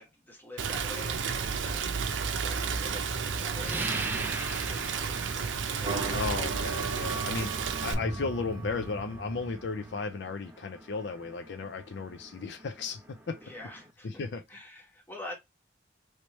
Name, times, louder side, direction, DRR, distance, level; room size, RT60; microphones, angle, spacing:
voice 1, 0.0-1.9 2.4-4.3 4.6-6.4 13.4-15.3, left 1 dB, 10° left, 1.3 m, -46 dB
Rain, 0.6-7.9, right 6 dB, 85° right, 0.5 m, -32 dB
sound 1, 3.6-13.9, right 2 dB, 10° right, 0.5 m, -43 dB
sound 2, 5.9-10.0, right 3 dB, 25° right, 1.0 m, -37 dB
voice 2, 6.1-13.4 14.0-14.4, left 4 dB, 65° left, 0.4 m, -35 dB
3.1 x 3.1 x 3.0 m
head